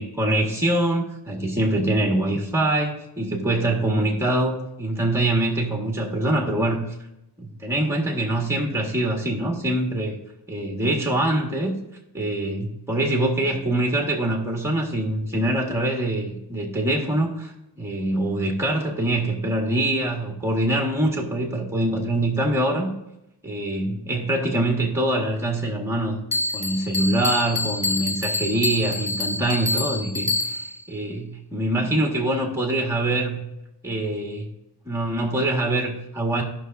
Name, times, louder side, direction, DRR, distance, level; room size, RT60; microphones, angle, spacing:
voice 1, 0.0-6.8 7.4-10.2 10.5-11.8 12.1-17.5 17.8-22.9 23.4-26.2 26.5-30.6 30.9-33.4 33.8-34.5 34.9-36.4, right 1 dB, 5° right, -1 dB, 1.8 m, -24 dB
Bell, 26.3-30.8, left 2 dB, 15° left, 1.1 m, -27 dB
16.5 x 5.9 x 2.7 m, 0.88 s
wide cardioid pair, 100°, 43 cm